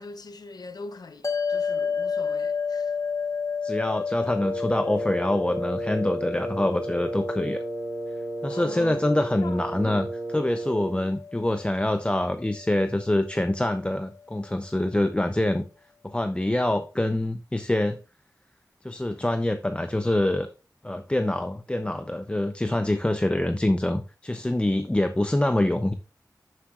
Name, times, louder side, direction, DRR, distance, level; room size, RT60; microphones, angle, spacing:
voice 1, 0.0-2.9 8.5-8.9 9.4-10.0, left 3 dB, 80° left, 0.8 m, -42 dB
sound 1, 1.2-13.7, left 6 dB, 50° left, 1.1 m, -32 dB
voice 2, 3.6-7.6 8.4-10.1 10.3-15.6 16.0-18.0 18.8-20.5 20.8-25.9, left 1 dB, 15° left, 0.6 m, -25 dB
Wind instrument woodwind instrument, 4.4-11.1, right 3 dB, 40° right, 0.5 m, -34 dB
9.0 x 7.6 x 2.4 m
wide cardioid pair, 70°, 7 cm